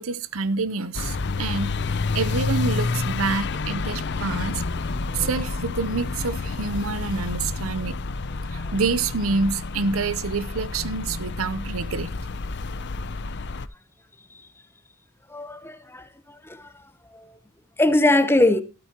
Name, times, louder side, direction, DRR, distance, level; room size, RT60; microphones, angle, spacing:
voice 1, 0.0-1.7 2.1-4.6 5.1-8.0 8.5-12.1, right 4 dB, 85° right, 0.8 m, -27 dB
sound 1, 0.9-13.7, left 3 dB, 55° left, 0.6 m, -29 dB
voice 2, 15.3-16.1 16.4-16.7 17.1-17.2 17.8-18.6, left 2 dB, 10° left, 0.9 m, -21 dB
13.0 x 13.0 x 2.9 m
head